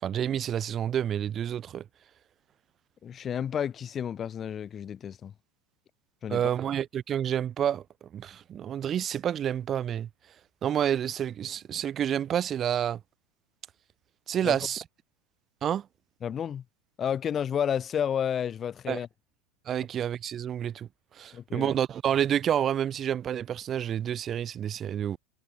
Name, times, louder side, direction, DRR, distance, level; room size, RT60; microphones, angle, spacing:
voice 1, 0.0-1.8 6.3-7.8 8.1-10.1 10.6-13.0 14.3-14.8 15.6-15.9 18.9-19.0 19.7-20.9 21.1-25.2, right 9 dB, 30° right, 5.4 m, -29 dB
voice 2, 3.0-5.3 6.2-6.4 14.4-14.6 16.2-16.6 17.0-19.1 21.3-21.7, left 8 dB, 30° left, 8.0 m, -31 dB
figure-of-eight pair, 85°, 0 cm